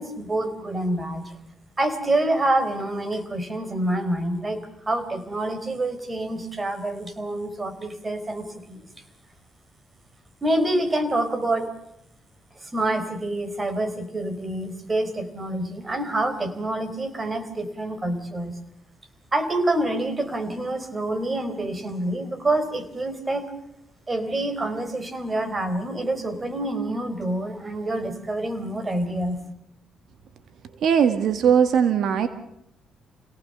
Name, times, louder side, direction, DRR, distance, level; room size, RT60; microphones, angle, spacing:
voice 1, 0.0-1.3 1.8-8.9 10.4-11.7 12.6-18.6 19.3-23.5 24.1-29.4, right 1 dB, 25° right, 9 dB, 4.2 m, -27 dB
voice 2, 30.8-32.3, right 7 dB, 70° right, 9 dB, 1.7 m, -19 dB
27.5 x 18.0 x 6.8 m, 0.82 s
cardioid pair, 90°, 0 cm